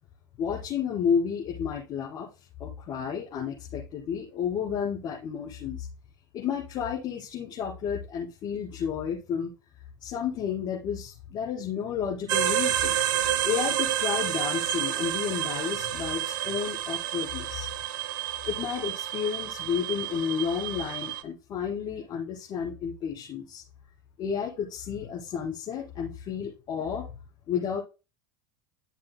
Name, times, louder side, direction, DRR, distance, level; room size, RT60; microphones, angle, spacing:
voice 1, 0.4-2.3 2.6-5.9 6.3-9.5 10.0-13.0 13.4-17.7 18.4-23.6 24.2-27.1 27.5-27.8, left 7 dB, 45° left, -5 dB, 5.0 m, -31 dB
sound 1, 12.3-21.2, right 11 dB, 80° right, 0.9 m, -29 dB
14.5 x 7.5 x 2.2 m, 0.31 s
hypercardioid pair, 90°, 10 cm